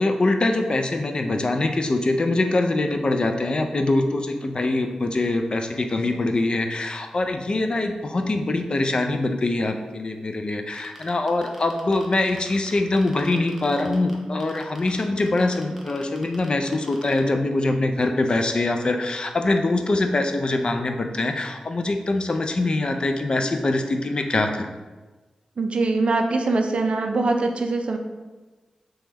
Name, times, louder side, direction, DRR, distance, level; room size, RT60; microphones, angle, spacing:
voice 1, 0.0-24.7, left 2 dB, 45° left, 5 dB, 0.3 m, -23 dB
sound 1, 10.7-14.1 14.4-17.2, right 1 dB, 10° right, 0.6 m, -45 dB
voice 2, 25.6-28.0, right 3 dB, 60° right, 4 dB, 0.3 m, -22 dB
3.0 x 2.2 x 3.3 m, 1.2 s
cardioid pair, 60°, 2 cm